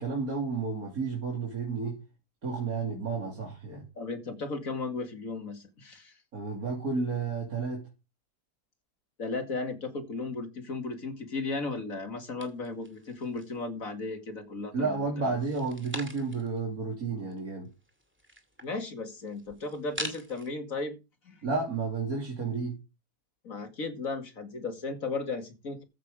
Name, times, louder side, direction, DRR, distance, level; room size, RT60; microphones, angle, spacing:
voice 1, 0.0-2.0 2.4-3.8 6.3-7.8 14.7-17.7 21.4-22.8, right 4 dB, 55° right, 3.4 m, -31 dB
voice 2, 4.0-6.2 9.2-15.4 18.6-21.0 21.2-21.4 23.4-25.8, left 3 dB, 55° left, 2.7 m, -35 dB
sound 1, 12.4-13.7 14.1-14.8 15.3-16.6 16.9-17.0 17.2-20.5, right 1 dB, 5° right, 2.2 m, -43 dB
14.5 x 6.8 x 5.0 m
omnidirectional pair, 1.8 m